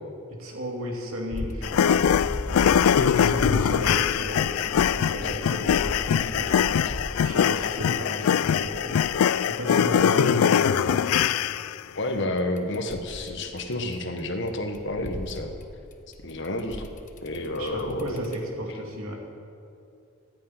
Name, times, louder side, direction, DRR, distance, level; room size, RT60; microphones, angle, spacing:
voice 1, 0.3-2.3 3.0-6.6 7.2-9.0 9.4-11.2 17.6-19.2, equal, 80° right, 0 dB, 2.8 m, -33 dB
sound 1, 1.3-10.2 12.4-14.2 14.5-18.4, left 1 dB, 35° left, 0.9 m, -37 dB
sound 2, 1.6-11.8, left 8 dB, 90° left, 0.3 m, -22 dB
voice 2, 11.9-15.5 16.2-16.9 17.2-18.2, left 1 dB, 60° left, 5 dB, 1.5 m, -30 dB
14.5 x 8.6 x 9.6 m, 2.5 s
head